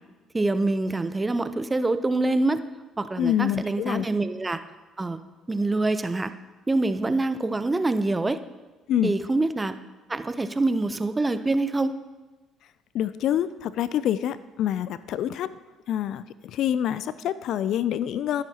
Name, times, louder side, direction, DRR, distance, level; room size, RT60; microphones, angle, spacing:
voice 1, 0.3-2.6 3.0-4.6 5.0-5.2 5.5-6.3 6.7-8.4 9.0-9.8 10.1-11.9, right 2 dB, 20° right, 12 dB, 0.6 m, -25 dB
voice 2, 3.2-4.1 8.9-9.1 12.9-15.5 15.9-16.2 16.5-18.4, left 10 dB, 65° left, 16 dB, 0.3 m, -26 dB
12.0 x 10.5 x 2.9 m, 1.2 s
hypercardioid pair, 60°, 0 cm